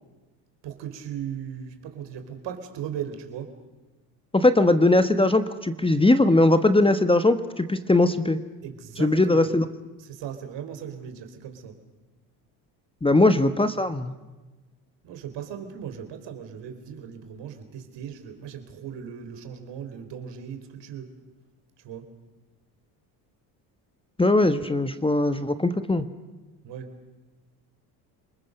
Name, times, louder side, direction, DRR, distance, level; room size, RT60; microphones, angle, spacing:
voice 1, 0.6-3.5 8.6-9.5 10.0-11.8 13.1-13.4 15.0-21.1 21.8-22.1 26.6-26.9, right 8 dB, 65° right, 7 dB, 3.8 m, -38 dB
voice 2, 4.3-8.4 9.0-9.7 13.0-14.1 24.2-26.0, left 2 dB, 10° left, 10 dB, 1.2 m, -20 dB
28.5 x 20.5 x 6.7 m, 1.2 s
hypercardioid pair, 70°, 47 cm